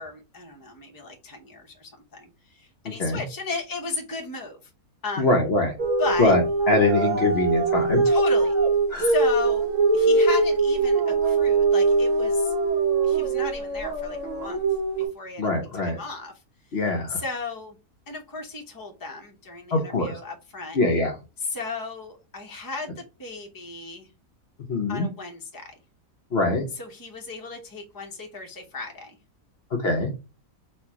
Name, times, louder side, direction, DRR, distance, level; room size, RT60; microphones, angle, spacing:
voice 1, 0.0-2.3 2.6-4.6 5.0-5.3 6.0-6.3 8.0-8.5 9.0-9.7 9.9-12.5 13.0-14.6 15.1-15.5 15.7-16.3 17.1-17.8 18.1-20.8 21.5-24.1 24.9-25.7 26.8-29.2, left 3 dB, 15° left, 2 dB, 0.8 m, -35 dB
voice 2, 2.8-3.2 5.2-5.8 6.2-8.1 8.9-9.1 15.4-16.0 16.7-17.2 19.7-20.2 20.7-21.2 24.7-25.1 26.3-26.6 29.8-30.1, left 2 dB, 50° left, 3 dB, 0.9 m, -23 dB
sound 1, 5.8-15.1, right 3 dB, 60° right, 1.5 m, -22 dB
4.2 x 2.5 x 4.5 m, 0.30 s
omnidirectional pair, 1.6 m